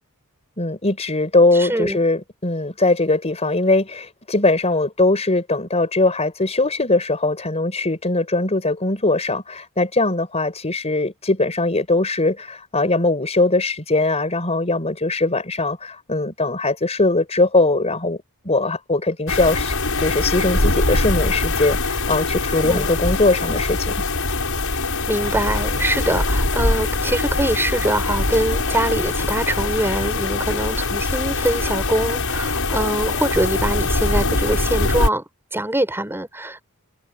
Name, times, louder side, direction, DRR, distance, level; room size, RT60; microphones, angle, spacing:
voice 1, 0.6-18.2 18.4-23.9, left 2 dB, 30° left, 5.1 m, -20 dB
voice 2, 1.6-2.0 22.6-22.9 25.1-35.2 35.5-36.6, right 1 dB, 10° right, 7.3 m, -23 dB
sound 1, 19.3-35.1, left 2 dB, 65° left, 7.8 m, -22 dB
head